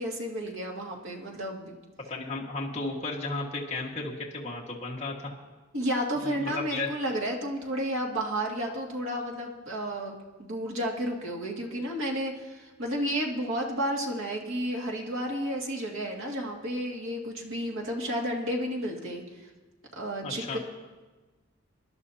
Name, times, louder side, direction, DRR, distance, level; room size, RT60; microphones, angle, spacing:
voice 1, 0.0-1.8 5.7-19.2 20.0-20.6, equal, 80° right, -1 dB, 2.1 m, -32 dB
voice 2, 2.1-5.3 6.1-6.9 20.2-20.6, left 3 dB, 35° left, -3 dB, 1.6 m, -34 dB
24.5 x 11.5 x 2.8 m, 1.2 s
head